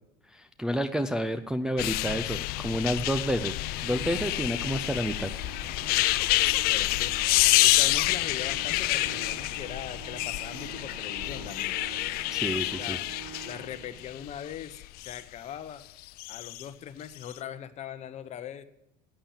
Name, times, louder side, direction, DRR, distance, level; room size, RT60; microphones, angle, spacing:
voice 1, 0.3-5.3 12.3-13.0, equal, 5° right, 5 dB, 0.4 m, -30 dB
sound 1, 1.8-15.2 16.1-16.6 17.2-17.3, left 18 dB, 55° left, 0.4 m, -28 dB
Organ, 3.6-14.4, right 4 dB, 30° right, 1.4 m, -46 dB
voice 2, 6.7-7.1 7.6-11.8 12.8-13.0 13.4-15.8 16.3-18.6, left 9 dB, 35° left, 12 dB, 0.9 m, -40 dB
Singing / Musical instrument, 7.0-16.0, right 1 dB, 55° right, 3.4 m, -55 dB
11.0 x 8.8 x 7.3 m, 0.90 s
supercardioid pair, 130°, 19 cm